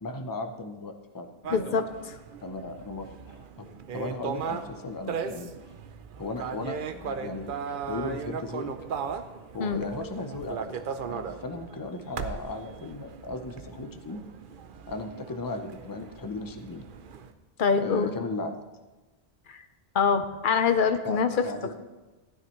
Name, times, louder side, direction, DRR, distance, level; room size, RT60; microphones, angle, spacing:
voice 1, 0.0-1.8 2.4-3.7 3.9-5.5 6.2-7.5 7.9-8.7 9.5-10.8 11.0-14.2 14.9-16.8 17.8-18.5 21.0-21.7, left 3 dB, 20° left, 6 dB, 0.7 m, -36 dB
sound 1, 1.4-17.3, right 6 dB, 55° right, 0.7 m, -38 dB
voice 2, 1.5-2.1 9.6-9.8 17.6-18.1 19.5-19.6 19.9-21.4, left 5 dB, 55° left, 9 dB, 0.8 m, -25 dB
15.5 x 9.8 x 3.1 m, 1.2 s
omnidirectional pair, 1.1 m